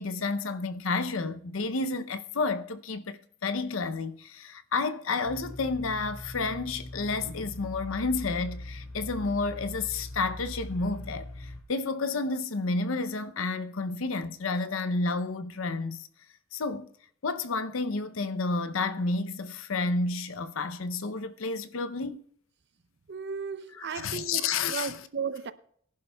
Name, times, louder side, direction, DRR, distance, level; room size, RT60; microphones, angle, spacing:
voice 1, 0.0-16.1 16.5-16.9 17.2-22.2 23.8-25.0, left 3 dB, 75° left, 0.6 m, -31 dB
sound 1, 5.2-11.6, left 1 dB, 55° left, 3.0 m, -41 dB
voice 2, 23.1-25.5, right 6 dB, 55° right, 0.6 m, -35 dB
22.0 x 11.0 x 2.3 m
head